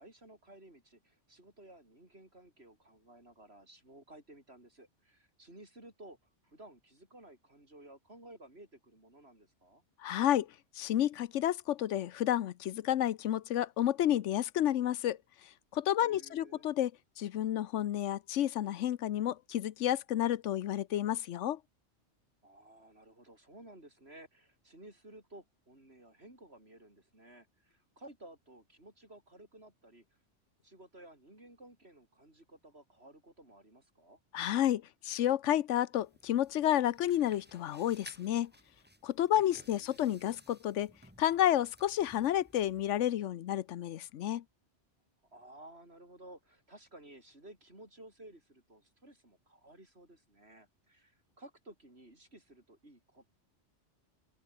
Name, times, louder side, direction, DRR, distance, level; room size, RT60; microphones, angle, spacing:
voice 1, 0.0-6.2 6.4-9.8 16.0-16.7 22.4-30.1 30.6-34.2 39.3-40.1 45.3-53.3, right 1 dB, 60° right, 7.5 m, -55 dB
voice 2, 10.0-10.5 10.8-15.2 15.7-16.9 17.2-21.6 34.3-38.5 39.0-40.9 41.2-44.4, left 12 dB, 90° left, 1.0 m, -30 dB
sound 1, 36.0-43.1, equal, 10° right, 6.3 m, -59 dB
open air
omnidirectional pair, 1.2 m